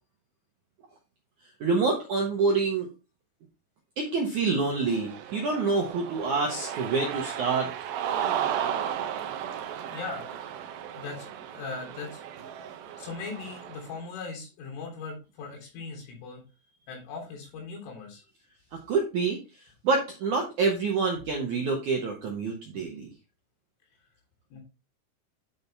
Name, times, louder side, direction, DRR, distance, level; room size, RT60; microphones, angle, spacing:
voice 1, 1.6-2.9 4.0-7.7 18.9-19.4 19.8-23.1, right 4 dB, 70° right, 1 dB, 1.9 m, -27 dB
Cheering, 4.7-13.9, right 9 dB, 85° right, 2.1 m, -34 dB
voice 2, 9.8-10.2 10.9-12.2 13.0-16.4 16.9-18.2 24.5-24.6, left 4 dB, 80° left, 0 dB, 5.9 m, -39 dB
10.5 x 5.7 x 3.4 m, 0.29 s
omnidirectional pair, 5.6 m